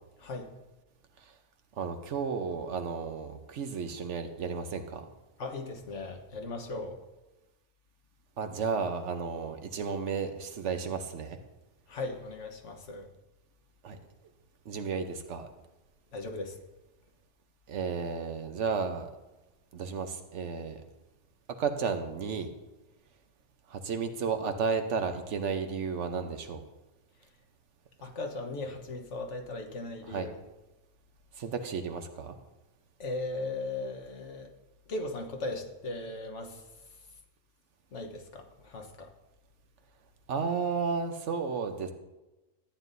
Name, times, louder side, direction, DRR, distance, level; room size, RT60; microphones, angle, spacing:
voice 1, 0.2-0.5 5.4-7.0 11.9-13.1 16.1-16.6 27.2-27.3 28.0-30.4 33.0-34.5 34.9-37.1 37.9-39.1, left 2 dB, 80° left, 4 dB, 1.5 m, -38 dB
voice 2, 1.8-5.0 8.4-11.4 13.8-14.0 14.7-15.5 17.7-19.1 19.7-20.8 21.6-22.5 23.7-26.6 30.1-30.3 31.4-32.4 40.3-41.9, right 5 dB, 80° right, 7 dB, 1.2 m, -33 dB
14.0 x 9.2 x 2.7 m, 1.1 s
omnidirectional pair, 1.2 m